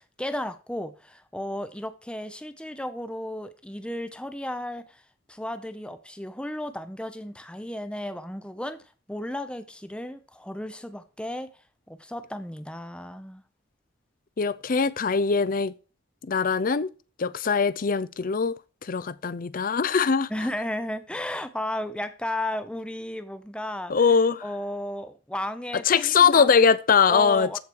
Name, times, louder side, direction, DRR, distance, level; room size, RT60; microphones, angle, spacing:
voice 1, 0.0-5.0 5.3-8.8 9.1-11.5 11.9-13.4 20.3-26.5 27.1-27.6, left 1 dB, 5° left, 0.6 m, -34 dB
voice 2, 14.4-15.7 16.2-16.9 17.2-18.5 18.8-20.3 23.9-24.4 25.9-27.6, left 5 dB, 50° left, 0.5 m, -21 dB
14.0 x 4.9 x 4.6 m
head